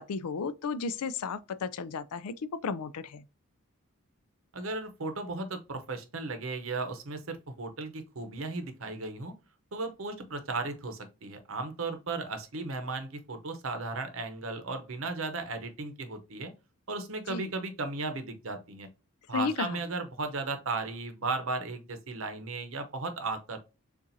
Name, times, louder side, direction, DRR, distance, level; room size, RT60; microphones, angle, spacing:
voice 1, 0.0-3.2 17.3-17.5 19.3-19.8, left 5 dB, 90° left, 0.4 m, -33 dB
voice 2, 4.5-9.3 9.7-16.5 16.9-18.9 19.3-23.6, right 3 dB, 70° right, 0.8 m, -35 dB
6.8 x 2.5 x 2.7 m
head